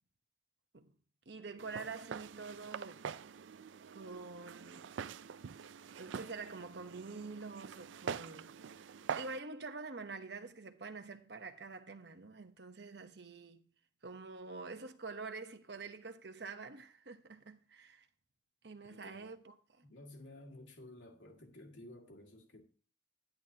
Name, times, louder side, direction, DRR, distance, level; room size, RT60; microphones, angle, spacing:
voice 1, 1.3-3.1 3.9-5.0 6.0-8.9 9.1-13.7 14.0-18.1 18.6-19.8, right 4 dB, 60° right, 1.0 m, -47 dB
Walk footsteps, 1.6-9.4, right 7 dB, 80° right, 0.4 m, -45 dB
voice 2, 18.8-19.3 19.8-22.6, left 1 dB, 80° left, 2.2 m, -54 dB
11.0 x 10.5 x 2.8 m
head